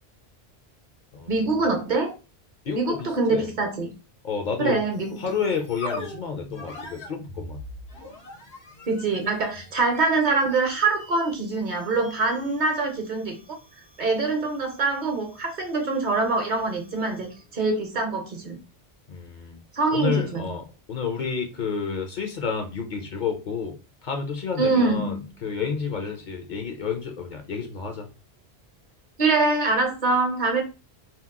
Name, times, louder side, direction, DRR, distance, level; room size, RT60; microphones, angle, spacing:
voice 1, 1.3-2.1 2.7-3.9 4.6-5.2 8.9-13.4 14.0-18.6 19.7-20.4 24.6-25.1 29.2-30.6, right 3 dB, 55° right, 4 dB, 0.8 m, -24 dB
voice 2, 2.6-3.5 4.2-4.8 5.2-7.6 19.1-19.6 19.9-23.8 24.0-28.1, left 6 dB, 55° left, 3 dB, 0.7 m, -30 dB
sound 1, 4.9-17.4, left 1 dB, 85° left, 1.1 m, -43 dB
2.8 x 2.0 x 3.5 m, 0.30 s
omnidirectional pair, 1.1 m